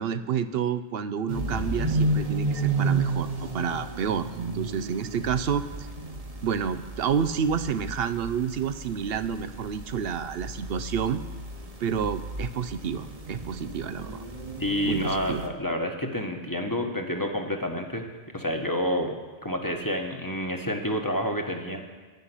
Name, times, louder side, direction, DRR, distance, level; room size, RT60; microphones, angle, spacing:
voice 1, 0.0-5.9 6.4-11.2 11.8-14.2 14.9-15.4, right 7 dB, 70° right, 12 dB, 0.9 m, -29 dB
sound 1, 1.3-15.5, right 3 dB, 35° right, 1.2 m, -32 dB
voice 2, 14.6-18.1 18.3-21.8, equal, 20° left, 3 dB, 1.3 m, -29 dB
15.0 x 5.7 x 9.8 m, 1.3 s
omnidirectional pair, 1.1 m